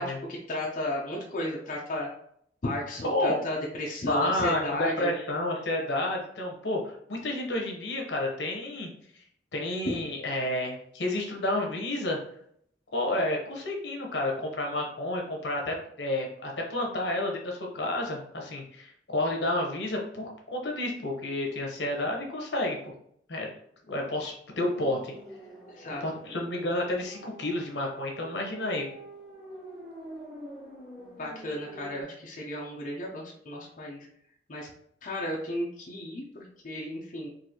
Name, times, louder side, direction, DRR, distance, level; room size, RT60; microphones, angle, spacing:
voice 1, 0.3-2.1 2.6-5.1 9.9-10.0 25.7-26.0 31.0-34.1 34.5-34.7 35.0-37.3, left 1 dB, 45° left, -3 dB, 0.6 m, -34 dB
voice 2, 3.0-3.4 4.1-8.9 9.5-12.2 12.9-22.8 23.3-23.5 23.9-25.1 26.0-28.9, left 1 dB, 75° left, 0 dB, 0.9 m, -30 dB
sound 1, 24.5-32.0, right 1 dB, ahead, 0.7 m, -46 dB
4.0 x 2.5 x 2.8 m, 0.68 s
head